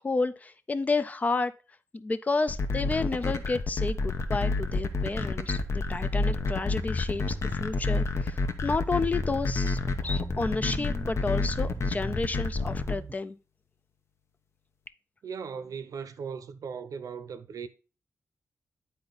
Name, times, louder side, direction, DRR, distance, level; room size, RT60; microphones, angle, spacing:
voice 1, 0.0-1.5 1.9-13.4, left 3 dB, 25° left, 0.4 m, -31 dB
sound 1, 2.5-12.9, left 3 dB, 55° left, 0.7 m, -29 dB
sound 2, 3.8-13.1, right 2 dB, 20° right, 0.6 m, -40 dB
voice 2, 15.2-17.7, right 6 dB, 75° right, 0.7 m, -38 dB
9.6 x 4.3 x 3.9 m
wide cardioid pair, 155°, 6 cm